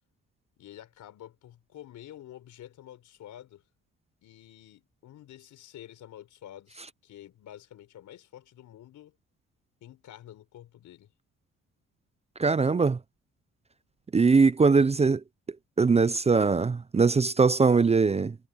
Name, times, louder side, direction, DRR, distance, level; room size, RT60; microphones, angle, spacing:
voice 1, 0.6-3.6 4.2-9.1 9.8-11.1, left 12 dB, 75° left, 4.5 m, -49 dB
voice 2, 12.4-13.0 14.1-15.2 15.8-18.4, right 4 dB, 20° right, 0.6 m, -21 dB
cardioid pair, 90°, 30 cm